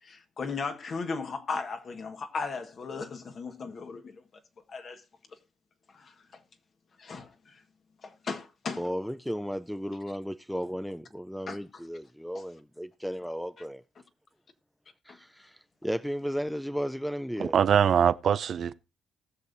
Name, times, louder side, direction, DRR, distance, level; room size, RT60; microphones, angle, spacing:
voice 1, 0.0-4.2 4.7-5.0 5.9-6.1 7.0-7.6 8.0-8.8 11.5-11.6 12.3-12.4 15.1-15.2, left 4 dB, 50° left, 1.6 m, -36 dB
voice 2, 8.8-13.8 15.1-17.6, equal, ahead, 0.5 m, -34 dB
voice 3, 17.4-18.7, right 8 dB, 60° right, 0.4 m, -23 dB
19.0 x 6.5 x 2.7 m
cardioid pair, 90°, 0 cm